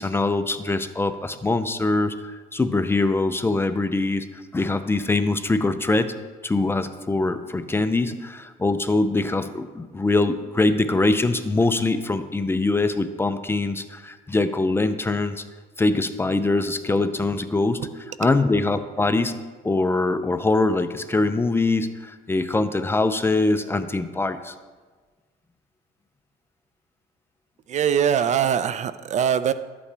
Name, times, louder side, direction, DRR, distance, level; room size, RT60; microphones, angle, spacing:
voice 1, 0.0-2.1 2.5-6.1 6.4-15.4 15.8-17.8 18.2-19.3 19.6-24.5, left 2 dB, 15° left, 10 dB, 0.5 m, -23 dB
voice 2, 27.7-29.5, right 8 dB, 45° right, 13 dB, 0.4 m, -22 dB
12.0 x 8.5 x 3.4 m, 1.4 s
cardioid pair, 110°, 17 cm